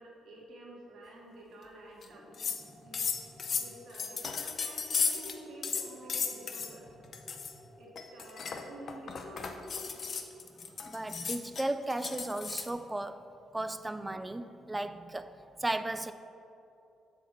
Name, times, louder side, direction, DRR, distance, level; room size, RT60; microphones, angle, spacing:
voice 1, 0.0-2.3 2.8-3.0 3.5-6.9 7.8-9.5, right 2 dB, 70° right, -4 dB, 1.8 m, -50 dB
sound 1, 2.0-2.1 2.3-2.6 2.9-5.4 5.6-6.7 7.1-7.5 8.0-12.7, left 5 dB, 50° left, 0.5 m, -35 dB
sound 2, 2.1-10.1, left 1 dB, 5° left, 1.0 m, -52 dB
voice 2, 10.9-13.3 13.5-15.3 15.6-16.1, right 2 dB, 15° right, 11 dB, 0.3 m, -35 dB
7.3 x 4.1 x 5.8 m, 2.7 s
cardioid pair, 90°, 0 cm